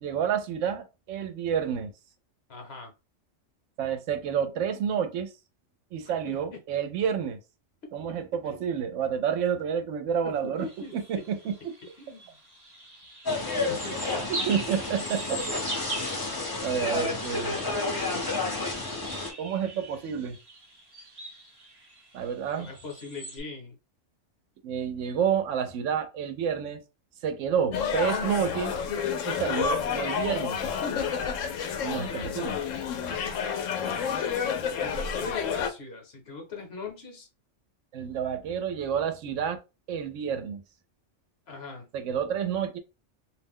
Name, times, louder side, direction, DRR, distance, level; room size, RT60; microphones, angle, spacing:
voice 1, 0.0-1.9 3.8-5.3 5.9-7.4 7.9-10.7 10.9-11.7 14.3-15.4 16.6-17.6 19.4-20.4 22.1-22.7 24.6-26.8 27.2-28.7 29.3-30.6 31.8-32.6 37.9-39.6 39.9-40.6 41.9-42.8, right 8 dB, 80° right, 0.9 m, -29 dB
voice 2, 2.5-2.9 6.3-6.6 8.4-8.6 10.2-11.2 12.0-12.4 13.4-14.0 16.7-17.0 17.9-18.4 22.6-23.8 29.5-29.7 32.0-32.8 34.7-37.3 41.5-41.9, left 3 dB, 60° left, 1.0 m, -41 dB
sound 1, 10.6-23.4, right 2 dB, 25° right, 0.6 m, -41 dB
sound 2, 13.2-19.3, left 3 dB, 25° left, 0.5 m, -31 dB
sound 3, 27.7-35.7, left 7 dB, 90° left, 0.9 m, -30 dB
2.5 x 2.1 x 3.5 m
omnidirectional pair, 1.3 m